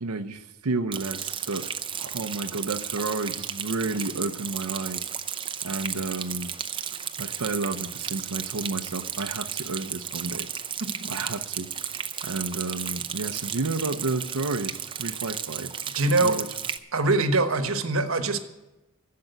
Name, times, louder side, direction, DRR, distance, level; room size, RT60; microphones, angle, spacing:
voice 1, 0.0-1.7 2.0-5.1 5.6-6.5 7.2-10.5 11.1-11.7 12.2-15.7 16.2-16.5, right 3 dB, 85° right, 7 dB, 0.7 m, -31 dB
Rain, 0.9-16.8, right 8 dB, 20° right, 0.6 m, -34 dB
voice 2, 15.9-16.4 16.9-18.4, right 2 dB, 65° right, 9 dB, 1.2 m, -23 dB
12.0 x 7.7 x 9.1 m, 1.0 s
head